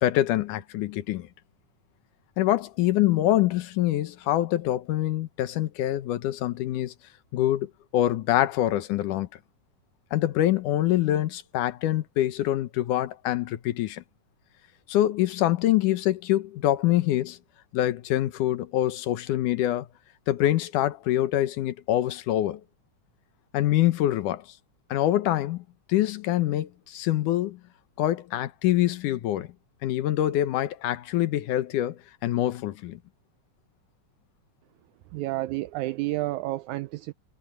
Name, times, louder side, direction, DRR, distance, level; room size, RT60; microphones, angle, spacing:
voice 1, 0.0-1.3 2.4-6.9 7.3-9.3 10.1-14.0 14.9-17.4 17.7-19.9 20.3-22.6 23.5-24.5 24.9-25.6 25.9-27.6 28.0-29.5 29.8-33.0, left 13 dB, 75° left, 2.5 m, -25 dB
voice 2, 35.1-37.1, right 18 dB, 85° right, 1.7 m, -30 dB
omnidirectional pair, 3.8 m